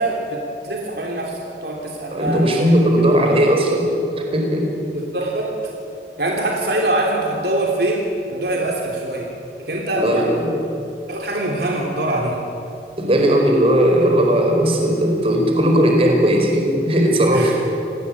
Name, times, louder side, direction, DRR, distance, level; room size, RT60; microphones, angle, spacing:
voice 1, 0.0-2.7 3.2-3.3 4.9-5.7 6.2-8.0 8.3-9.3 9.6-10.4 11.1-12.4 17.3-17.6, right 1 dB, 60° right, 0 dB, 3.2 m, -23 dB
voice 2, 2.1-3.9 4.3-4.7 10.0-10.6 13.0-17.6, equal, 35° right, 2 dB, 4.7 m, -17 dB
28.0 x 19.5 x 8.6 m, 2.7 s
head